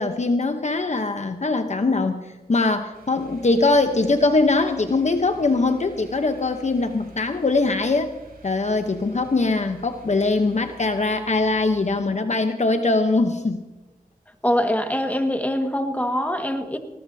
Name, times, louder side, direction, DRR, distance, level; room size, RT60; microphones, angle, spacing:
voice 1, 0.0-2.2 2.5-8.1 8.4-13.6, left 3 dB, 50° left, 7 dB, 0.9 m, -22 dB
sound 1, 2.9-11.9, right 3 dB, 90° right, 4.8 m, -49 dB
voice 2, 14.4-16.8, equal, 10° left, 5 dB, 1.7 m, -23 dB
19.0 x 19.0 x 2.8 m, 1.1 s
wide cardioid pair, 55°, 15 cm